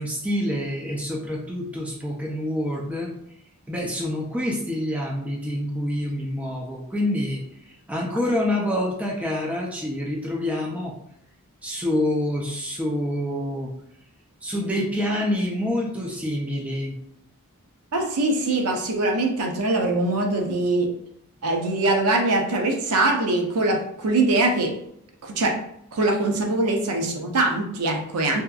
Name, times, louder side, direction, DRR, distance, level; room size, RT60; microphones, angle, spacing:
voice 1, 0.0-3.1 3.7-7.4 7.9-10.9 11.6-13.7 14.4-16.9, left 1 dB, 5° right, -2 dB, 0.3 m, -27 dB
voice 2, 17.9-20.9 21.4-24.8 25.2-25.6 25.9-28.4, right 2 dB, 90° right, 2 dB, 0.6 m, -22 dB
2.7 x 2.4 x 2.3 m, 0.72 s
head